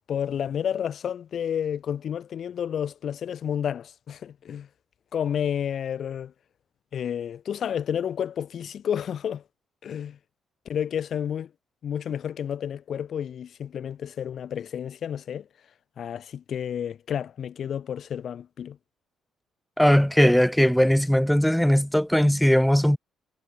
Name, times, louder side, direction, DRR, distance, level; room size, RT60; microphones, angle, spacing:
voice 1, 0.1-4.7 5.1-6.3 6.9-9.4 9.8-10.2 10.6-11.5 11.8-15.5 16.0-18.8, left 9 dB, 60° left, 1.5 m, -30 dB
voice 2, 19.8-23.0, equal, 5° left, 0.6 m, -19 dB
cardioid pair, 90°, 0 cm